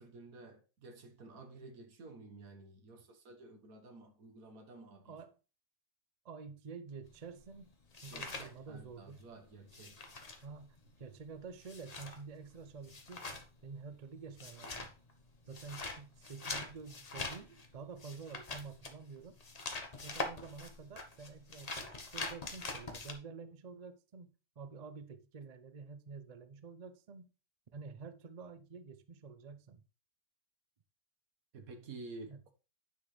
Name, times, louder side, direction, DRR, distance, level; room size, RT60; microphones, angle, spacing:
voice 1, 0.0-5.2 8.1-10.1 31.5-32.5, right 3 dB, 65° right, 1.6 m, -52 dB
voice 2, 6.2-7.7 8.0-9.2 10.4-14.9 15.5-19.4 20.0-24.3 24.6-27.3 27.7-29.8 32.3-32.4, right 5 dB, 50° right, 0.4 m, -49 dB
sound 1, 7.1-9.2 9.5-23.1, left 3 dB, 30° left, 0.9 m, -44 dB
9.6 x 5.9 x 3.2 m
omnidirectional pair, 1.6 m